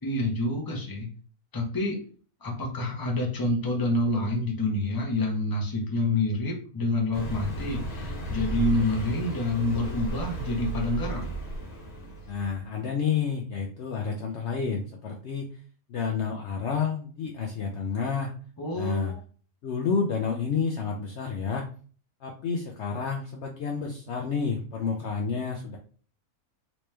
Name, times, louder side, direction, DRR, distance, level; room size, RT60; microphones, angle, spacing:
voice 1, 0.0-1.1 1.5-2.0 2.4-11.3 18.6-19.2, left 2 dB, 20° left, 0 dB, 0.7 m, -28 dB
Car passing by, 7.1-12.6, right 2 dB, 90° left, 1.5 m, -34 dB
voice 2, 12.3-15.5 15.9-18.3 18.7-19.1 19.6-21.7 22.2-25.8, left 5 dB, 65° left, 1 dB, 0.7 m, -30 dB
3.1 x 3.0 x 3.2 m, 0.42 s
omnidirectional pair, 1.5 m